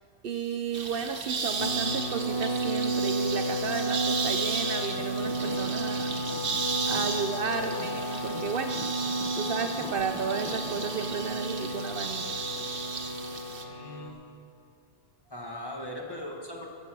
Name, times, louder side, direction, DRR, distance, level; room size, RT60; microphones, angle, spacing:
voice 1, 0.2-6.6 6.9-8.8 9.3-12.4, right 6 dB, 65° right, 7 dB, 0.8 m, -33 dB
sound 1, 0.7-13.6, right 5 dB, 80° right, 1.3 m, -35 dB
sound 2, 1.6-14.1, right 1 dB, 60° left, 1.3 m, -32 dB
Traffic noise roadway noise / Engine, 4.9-11.3, right 1 dB, 5° right, 0.5 m, -47 dB
voice 2, 13.6-14.3 15.3-16.7, left 1 dB, 20° left, -1 dB, 1.5 m, -39 dB
15.0 x 7.2 x 6.1 m, 2.6 s
omnidirectional pair, 1.1 m